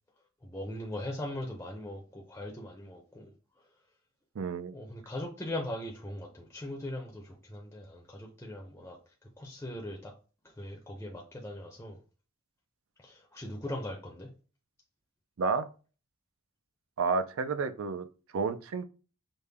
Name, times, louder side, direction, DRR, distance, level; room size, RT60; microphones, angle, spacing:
voice 1, 0.4-3.3 4.7-9.0 9.4-10.1 10.4-12.0 13.0-14.3, left 1 dB, 10° left, 0.5 m, -40 dB
voice 2, 4.4-4.8 15.4-15.7 17.0-18.1 18.3-18.8, right 4 dB, 65° right, 0.4 m, -30 dB
5.2 x 2.1 x 3.3 m
head